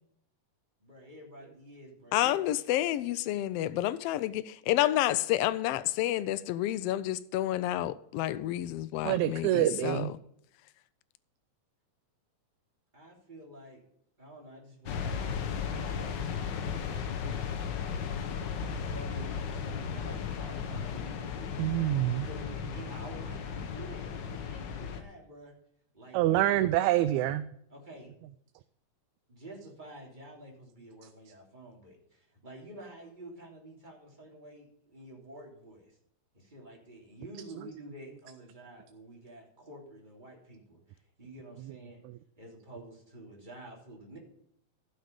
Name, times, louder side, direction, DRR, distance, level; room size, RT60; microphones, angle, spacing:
voice 1, 0.8-2.4 12.9-13.8 14.2-16.4 18.8-21.6 22.1-25.5 25.9-27.0 27.7-28.2 29.3-36.0 36.3-42.0 42.4-44.2, right 1 dB, 15° right, 2.9 m, -49 dB
voice 2, 2.1-10.2, left 14 dB, 85° left, 1.4 m, -29 dB
voice 3, 9.0-10.1 21.6-22.3 26.1-27.5, right 14 dB, 80° right, 1.9 m, -26 dB
sound 1, 14.9-25.0, left 6 dB, 70° left, 1.0 m, -35 dB
14.0 x 6.4 x 5.2 m
omnidirectional pair, 3.3 m